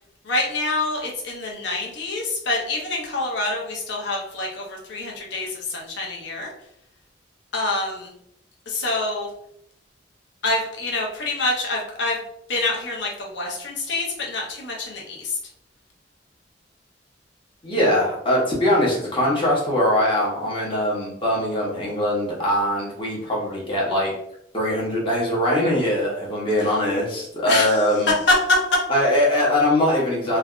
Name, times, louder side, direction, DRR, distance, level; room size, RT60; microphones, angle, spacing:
voice 1, 0.2-6.5 7.5-8.1 8.7-9.3 10.4-12.2 12.5-15.4 27.5-27.8 28.5-28.6, left 2 dB, 65° left, -2 dB, 0.8 m, -26 dB
voice 2, 17.6-24.1 24.5-28.1 28.9-30.4, left 1 dB, 30° left, -4 dB, 0.9 m, -21 dB
3.2 x 2.3 x 2.4 m, 0.75 s
head